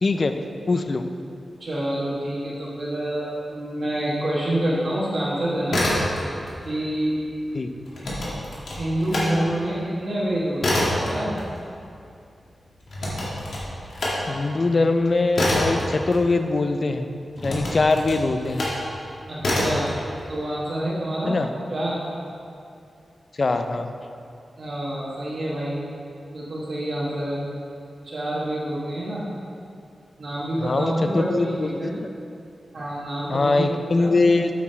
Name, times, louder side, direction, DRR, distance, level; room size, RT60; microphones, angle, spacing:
voice 1, 0.0-0.4 0.7-1.1 7.5-7.7 14.3-17.1 17.4-18.7 21.2-21.5 23.4-23.9 30.6-31.9 33.3-34.5, left 3 dB, 35° left, 7 dB, 0.4 m, -22 dB
voice 2, 1.6-5.8 6.6-7.2 8.8-11.3 19.3-19.9 20.3-21.4 21.7-22.0 24.6-25.8 26.3-27.4 28.0-29.2 30.2-31.9 32.7-33.7 34.0-34.1, right 1 dB, 50° right, -7 dB, 1.2 m, -27 dB
sound 1, 5.7-6.5 6.8-9.3 9.7-16.7 17.4-18.8 19.4-19.9, left 1 dB, 70° left, 1.9 m, -27 dB
8.4 x 6.2 x 4.3 m, 2.5 s
wide cardioid pair, 170°, 0 cm